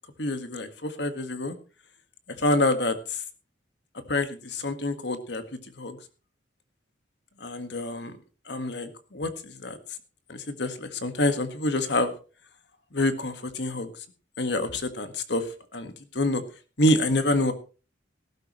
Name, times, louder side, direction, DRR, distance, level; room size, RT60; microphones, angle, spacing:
voice 1, 0.2-1.6 2.3-3.2 3.9-5.4 5.8-6.0 7.4-8.2 8.5-9.8 10.3-12.1 12.9-13.9 14.4-16.4 16.8-17.5, left 1 dB, 60° left, 9 dB, 1.7 m, -27 dB
18.5 x 12.0 x 3.1 m, 0.34 s
head